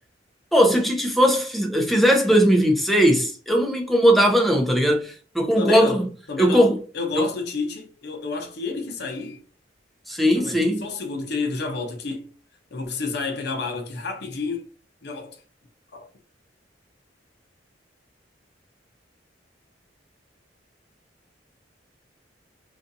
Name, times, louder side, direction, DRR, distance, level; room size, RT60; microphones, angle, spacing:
voice 1, 0.5-6.1 6.4-6.8 7.2-7.3 10.1-10.8, equal, ahead, 0.5 m, -19 dB
voice 2, 5.6-6.0 6.3-9.4 10.3-12.3 12.7-14.6 15.0-15.4 15.9-16.1, left 4 dB, 60° left, 0.6 m, -30 dB
2.5 x 2.3 x 2.6 m
head